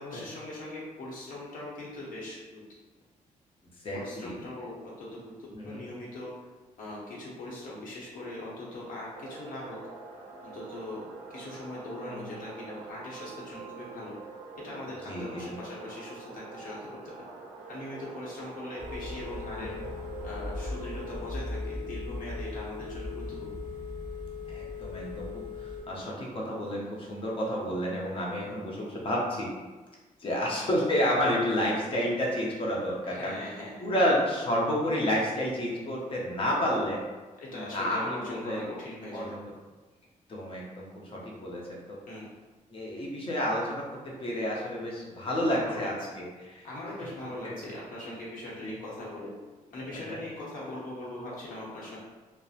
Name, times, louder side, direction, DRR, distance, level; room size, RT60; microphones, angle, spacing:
voice 1, 0.0-2.6 3.9-6.3 6.8-9.8 10.4-14.2 14.5-17.1 17.7-19.8 20.2-23.6 30.4-30.6 33.0-33.9 37.4-39.4 42.1-42.3 45.6-46.1 46.6-49.3 49.7-52.0, left 1 dB, 75° left, -6 dB, 0.9 m, -41 dB
voice 2, 3.8-4.4 5.5-5.8 12.0-12.3 15.1-15.5 24.5-25.3 25.6-29.5 30.2-33.3 33.8-37.0 37.5-38.6 39.1-39.4 40.3-42.0 42.7-46.3 47.4-47.6 48.6-48.7 50.1-50.2, equal, 40° left, -3 dB, 0.6 m, -30 dB
sound 1, 9.1-21.2, right 4 dB, 75° right, 0.4 m, -45 dB
Telephone, 18.8-25.8, left 3 dB, 10° right, 0.6 m, -38 dB
2.7 x 2.0 x 2.4 m, 1.3 s
cardioid pair, 120°, 14 cm